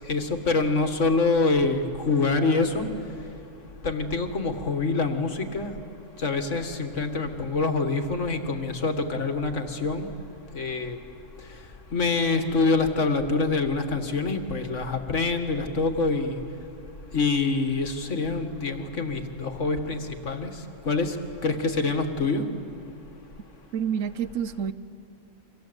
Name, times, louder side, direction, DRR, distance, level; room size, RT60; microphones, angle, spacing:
voice 1, 0.0-2.9 3.8-5.7 6.2-10.1 10.5-11.0 11.9-16.4 17.1-20.5 20.9-21.2 21.4-22.4, left 3 dB, 60° left, 6 dB, 2.0 m, -25 dB
voice 2, 23.7-24.7, right 8 dB, 70° right, 14 dB, 1.2 m, -28 dB
30.0 x 24.5 x 8.1 m, 2.6 s
omnidirectional pair, 1.4 m